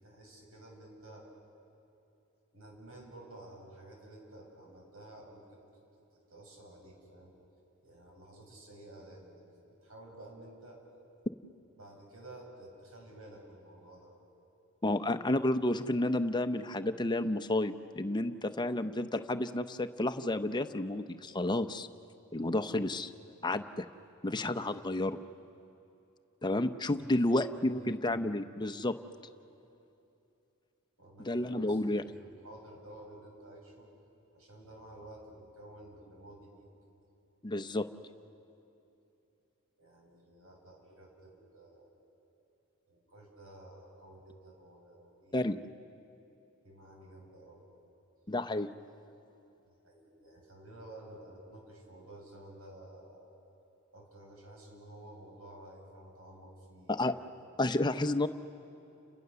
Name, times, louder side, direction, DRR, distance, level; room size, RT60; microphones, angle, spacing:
voice 1, 0.0-1.3 2.5-5.6 6.3-7.3 7.8-10.8 11.8-14.1 26.9-27.9 31.0-31.3 31.6-33.9 34.3-36.6 39.8-41.9 42.9-45.5 46.6-47.6 49.8-53.3 53.9-57.3, right 1 dB, 80° right, 0 dB, 7.3 m, -52 dB
voice 2, 14.8-21.9 22.3-23.1 23.4-23.9 24.2-25.2 26.4-28.9 31.2-32.1 37.4-37.9 45.3-45.6 48.3-48.7 56.9-57.1 57.6-58.3, left 1 dB, 20° left, 8 dB, 0.7 m, -31 dB
30.0 x 29.0 x 6.9 m, 2.8 s
head